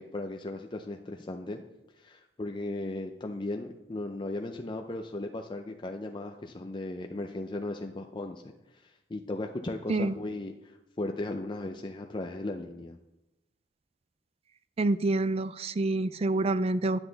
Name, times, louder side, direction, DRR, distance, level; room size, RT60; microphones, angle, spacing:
voice 1, 0.0-1.6 2.0-8.4 8.7-13.0, left 2 dB, 25° left, 4 dB, 0.5 m, -36 dB
voice 2, 14.8-17.0, right 2 dB, 35° right, 15 dB, 0.4 m, -27 dB
9.8 x 7.9 x 4.0 m, 0.96 s
head